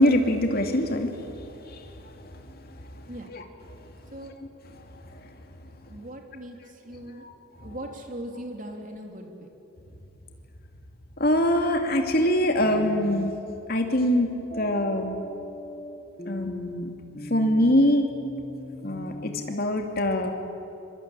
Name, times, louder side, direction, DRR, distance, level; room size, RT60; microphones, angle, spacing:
voice 1, 0.0-2.8 3.3-3.4 4.7-5.3 7.2-7.3 11.2-13.3 13.7-14.3 14.6-15.2 16.3-16.9 17.2-18.1 18.8-20.3, left 1 dB, 45° left, 4 dB, 2.5 m, -24 dB
voice 2, 5.9-7.2 7.6-9.5, right 1 dB, 40° right, 3 dB, 3.2 m, -39 dB
sound 1, 12.6-13.4 14.5-19.6, left 1 dB, 30° left, 1.1 m, -38 dB
26.0 x 24.0 x 8.9 m, 3.0 s
head